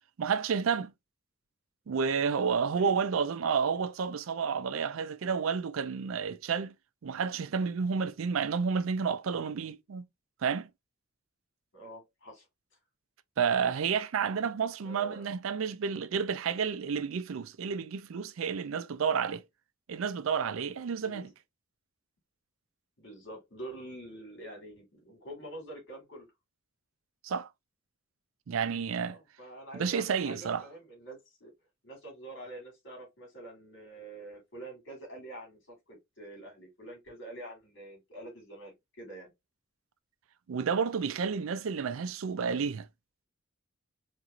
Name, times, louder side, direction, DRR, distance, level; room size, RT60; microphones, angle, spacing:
voice 1, 0.2-0.9 1.9-6.7 7.0-10.0 10.4-10.7 13.4-19.4 19.9-21.3 27.2-27.5 28.5-29.2 29.7-30.6 40.5-42.9, right 6 dB, 85° right, 0.4 m, -30 dB
voice 2, 11.7-12.5 14.8-15.3 21.0-21.3 23.0-26.3 29.0-31.5 31.8-39.3, right 1 dB, 65° left, 2.5 m, -46 dB
4.4 x 2.6 x 2.5 m
head